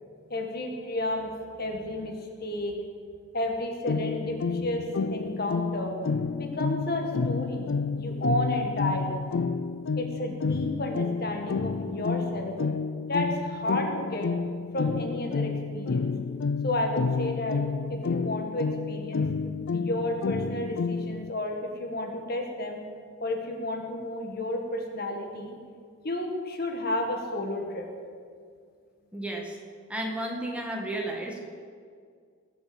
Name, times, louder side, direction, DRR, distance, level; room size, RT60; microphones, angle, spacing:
voice 1, 0.3-1.3 1.6-2.1 2.4-2.8 3.3-5.9 6.4-9.1 10.0-12.5 13.1-14.3 14.7-16.1 16.6-17.6 17.9-19.3 19.7-22.8 23.2-25.6 26.0-27.9, left 1 dB, 50° left, 3 dB, 1.8 m, -32 dB
sound 1, 3.9-21.3, left 4 dB, 75° left, 0.5 m, -30 dB
voice 2, 29.1-29.6 29.9-31.4, right 1 dB, 5° right, 0 dB, 1.9 m, -33 dB
20.0 x 7.0 x 7.9 m, 2.1 s
head